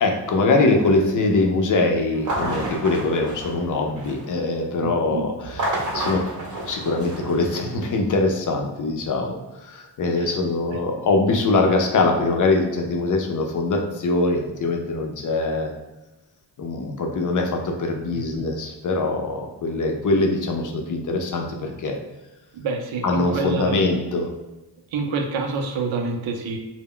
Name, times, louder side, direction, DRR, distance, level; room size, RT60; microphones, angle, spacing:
voice 1, 0.0-6.3 6.6-15.7 16.6-22.0 23.0-24.3, left 3 dB, 45° left, 2 dB, 0.4 m, -23 dB
sound 1, 2.1-4.4 5.4-7.9, right 1 dB, 40° right, 0.6 m, -30 dB
voice 2, 4.8-5.2 10.2-10.3 10.7-10.8 18.1-18.4 22.5-23.8 24.9-26.6, right 4 dB, 85° right, 4 dB, 0.6 m, -27 dB
2.1 x 2.0 x 3.6 m, 1.1 s
cardioid pair, 95°, 45 cm